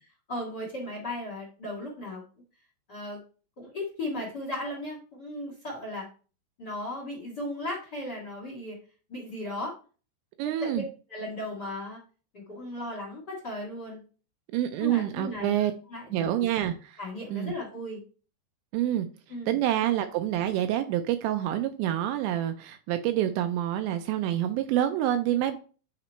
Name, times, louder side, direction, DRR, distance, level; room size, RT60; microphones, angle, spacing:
voice 1, 0.3-2.2 2.9-3.2 3.6-6.1 6.6-8.8 9.1-9.7 10.4-10.8 11.1-12.0 12.3-14.0 14.8-15.5 15.9-16.5 17.0-18.0 19.3-19.6, left 1 dB, 55° left, -1 dB, 1.1 m, -36 dB
voice 2, 10.4-10.8 14.5-15.7 16.1-17.0 17.3-17.5 18.7-19.1 19.5-25.6, right 12 dB, 85° right, 7 dB, 2.7 m, -27 dB
8.7 x 3.0 x 4.4 m, 0.37 s
omnidirectional pair, 5.3 m